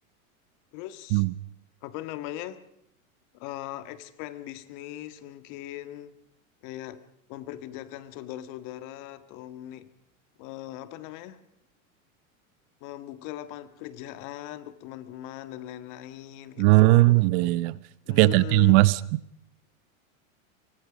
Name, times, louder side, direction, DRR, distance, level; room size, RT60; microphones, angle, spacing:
voice 1, 0.7-1.2 1.8-2.6 3.3-6.2 6.6-7.0 7.3-9.9 10.4-11.4 12.8-17.0 18.1-18.8, left 14 dB, 50° left, 11 dB, 1.9 m, -39 dB
voice 2, 16.6-17.8 18.1-19.0, right 21 dB, 50° right, 18 dB, 0.9 m, -19 dB
24.5 x 24.0 x 5.1 m, 0.72 s
supercardioid pair, 130°, 41 cm